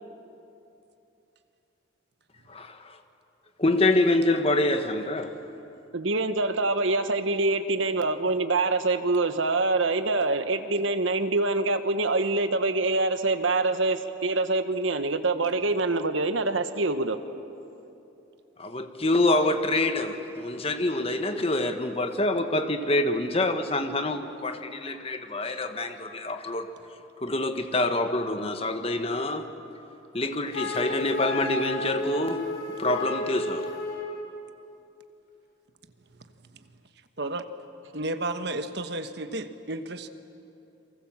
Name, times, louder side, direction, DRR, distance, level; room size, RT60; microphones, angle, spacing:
voice 1, 2.5-3.0 3.6-5.3 18.6-26.7 27.2-29.5 30.1-33.7, left 2 dB, 30° left, 7 dB, 1.4 m, -26 dB
voice 2, 5.9-17.2, right 3 dB, 80° right, 9 dB, 1.4 m, -25 dB
Wind instrument woodwind instrument, 30.5-34.2, left 2 dB, 50° left, 3.4 m, -32 dB
voice 3, 37.9-40.1, right 2 dB, 55° right, 9 dB, 1.2 m, -32 dB
29.5 x 23.5 x 7.4 m, 2.8 s
head